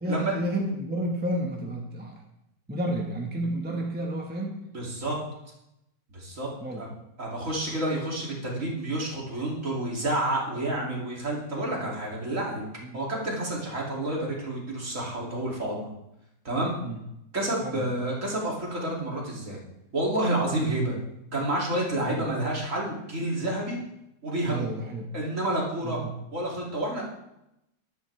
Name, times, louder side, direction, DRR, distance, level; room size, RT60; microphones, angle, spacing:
voice 1, 0.0-2.2 2.7-4.6 6.6-6.9 11.8-11.9 12.8-12.9 16.8-17.0 17.6-17.9 22.0-22.3 24.5-25.1 25.8-26.1, right 1 dB, 5° right, 0 dB, 1.2 m, -31 dB
voice 2, 4.7-5.2 6.1-6.5 6.8-6.9 7.2-12.7 12.9-15.9 16.4-16.8 17.3-19.6 19.9-21.0 21.3-23.8 24.2-24.7 25.1-26.0 26.3-27.1, right 1 dB, 40° right, -3 dB, 3.2 m, -29 dB
14.0 x 12.0 x 3.4 m, 0.85 s
omnidirectional pair, 2.0 m